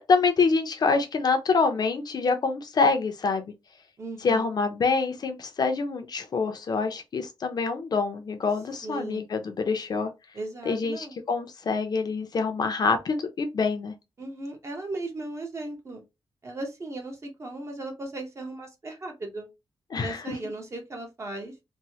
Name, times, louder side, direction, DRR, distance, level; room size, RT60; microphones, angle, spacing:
voice 1, 0.1-3.4 4.2-10.1 10.6-13.9 19.9-20.4, left 4 dB, 45° left, 0.5 m, -26 dB
voice 2, 4.0-4.5 8.8-9.2 10.3-11.2 14.2-16.0 16.4-19.5 20.0-21.5, right 2 dB, 30° right, 0.8 m, -37 dB
3.0 x 2.1 x 2.7 m
wide cardioid pair, 175°, 9 cm